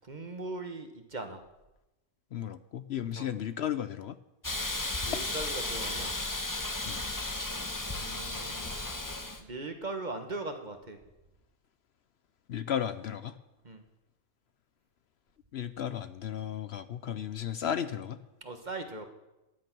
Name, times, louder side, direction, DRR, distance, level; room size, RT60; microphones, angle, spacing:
voice 1, 0.0-1.4 3.1-3.3 5.0-6.1 8.0-8.8 9.4-11.0 13.6-13.8 18.4-19.1, right 2 dB, 40° right, 6 dB, 1.5 m, -39 dB
voice 2, 2.3-4.2 6.8-7.0 12.5-13.4 15.5-18.2, left 9 dB, 65° left, 12 dB, 0.8 m, -34 dB
Hiss, 4.4-9.4, left 2 dB, 15° left, 1.0 m, -34 dB
15.0 x 10.5 x 6.1 m, 0.99 s
omnidirectional pair, 1.3 m